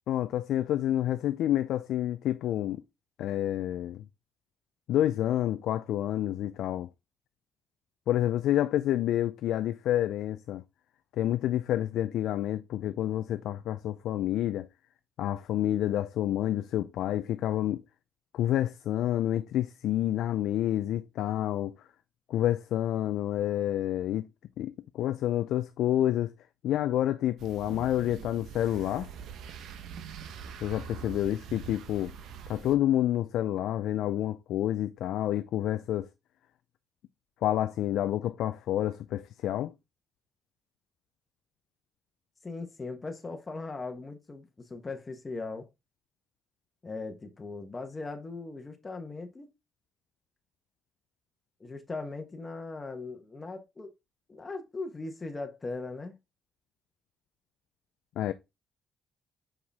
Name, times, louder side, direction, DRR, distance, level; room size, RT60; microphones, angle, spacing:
voice 1, 0.1-2.8 3.2-4.0 4.9-6.9 8.1-10.6 11.2-14.7 15.2-17.8 18.3-21.7 22.3-24.3 24.6-26.3 26.6-29.1 30.6-32.1 32.5-36.1 37.4-39.7 58.2-58.3, left 12 dB, 80° left, 0.4 m, -28 dB
sound 1, 27.4-32.7, right 7 dB, 80° right, 0.8 m, -44 dB
voice 2, 42.4-45.7 46.8-49.5 51.6-53.9 54.3-56.1, left 3 dB, 25° left, 1.1 m, -39 dB
5.7 x 4.8 x 3.4 m
cardioid pair, 90°, 0 cm